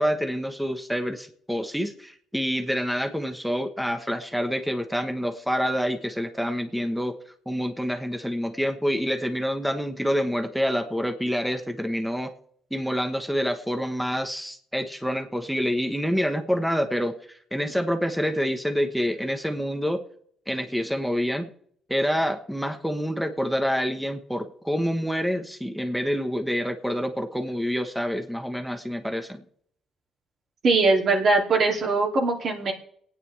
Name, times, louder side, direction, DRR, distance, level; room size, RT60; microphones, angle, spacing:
voice 1, 0.0-7.2 7.5-12.3 12.7-20.0 20.5-21.5 21.9-29.4, equal, ahead, 6 dB, 1.2 m, -27 dB
voice 2, 30.6-32.7, right 3 dB, 55° right, 0 dB, 2.8 m, -21 dB
23.0 x 9.4 x 3.4 m, 0.62 s
cardioid pair, 90°, 0 cm